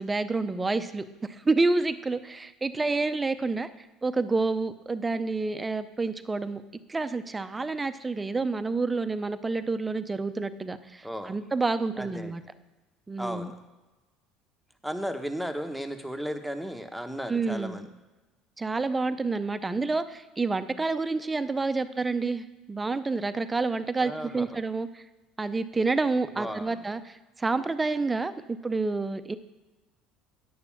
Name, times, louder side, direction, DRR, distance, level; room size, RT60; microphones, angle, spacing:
voice 1, 0.0-3.7 4.0-6.6 6.9-12.4 13.1-13.5 17.3-17.9 18.6-25.0 25.4-29.4, right 3 dB, 15° right, 12 dB, 0.6 m, -29 dB
voice 2, 11.0-11.3 12.0-12.4 13.2-13.5 14.8-17.9 24.0-24.6 26.4-26.8, equal, ahead, 6 dB, 1.0 m, -35 dB
9.4 x 6.8 x 7.2 m, 1.1 s
supercardioid pair, 100°, 0 cm